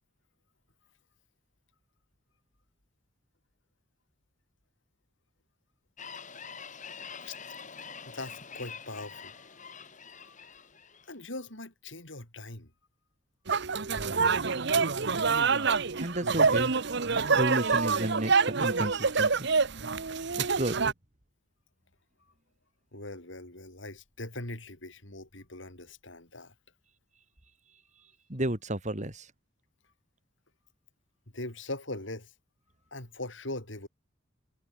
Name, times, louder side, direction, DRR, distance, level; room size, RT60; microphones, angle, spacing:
sound 1, 6.0-11.1, left 6 dB, 40° left, 4.6 m, -45 dB
voice 1, 8.1-9.7 10.1-10.4 11.1-12.7 22.9-26.5 31.3-32.3 32.9-33.9, left 2 dB, 65° left, 5.6 m, -41 dB
sound 2, 13.5-20.9, right 5 dB, 60° right, 1.1 m, -26 dB
voice 2, 16.0-16.7 17.3-19.5 20.4-20.7 28.3-29.3, right 1 dB, 35° right, 3.3 m, -32 dB
head